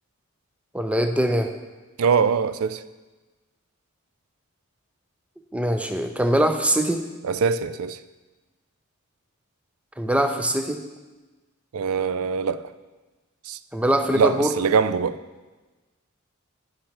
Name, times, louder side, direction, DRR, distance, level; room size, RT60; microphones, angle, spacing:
voice 1, 0.7-1.5 5.5-7.0 10.0-10.8 13.7-14.5, right 1 dB, 5° right, 6 dB, 0.5 m, -22 dB
voice 2, 2.0-2.8 7.2-8.0 11.7-12.7 13.4-13.6 14.1-15.2, right 6 dB, 90° right, 14 dB, 0.4 m, -23 dB
10.0 x 6.6 x 4.4 m, 1.2 s
head